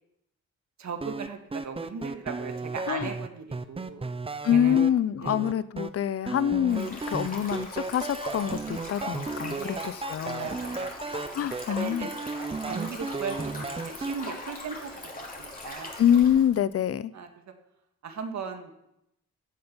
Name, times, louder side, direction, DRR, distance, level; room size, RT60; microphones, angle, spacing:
voice 1, 0.8-4.1 4.5-4.8 5.2-5.4 9.5-9.8 10.2-10.9 11.7-12.1 12.6-15.9 17.1-17.3 18.0-18.7, right 5 dB, 70° right, 5 dB, 1.8 m, -37 dB
sound 1, 1.0-4.9 5.3-5.9 6.3-14.2, right 3 dB, 20° right, 0.7 m, -34 dB
voice 2, 4.4-10.5 11.3-12.1 16.0-17.1, left 9 dB, 50° left, 18 dB, 0.5 m, -25 dB
Stream, 6.7-16.5, left 2 dB, 30° left, 2.8 m, -40 dB
15.0 x 7.8 x 5.5 m, 0.83 s
cardioid pair, 110°, 30 cm